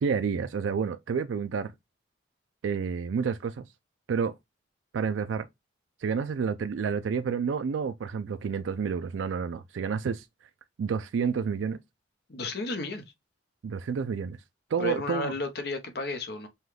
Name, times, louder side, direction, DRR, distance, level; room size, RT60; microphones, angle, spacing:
voice 1, 0.0-1.7 2.6-3.6 4.1-4.3 4.9-5.5 6.0-10.3 10.8-11.8 13.6-14.4 14.7-15.3, right 6 dB, 85° right, 0.4 m, -29 dB
voice 2, 12.3-13.0 14.8-16.5, left 2 dB, 55° left, 0.8 m, -32 dB
5.5 x 2.3 x 3.2 m
head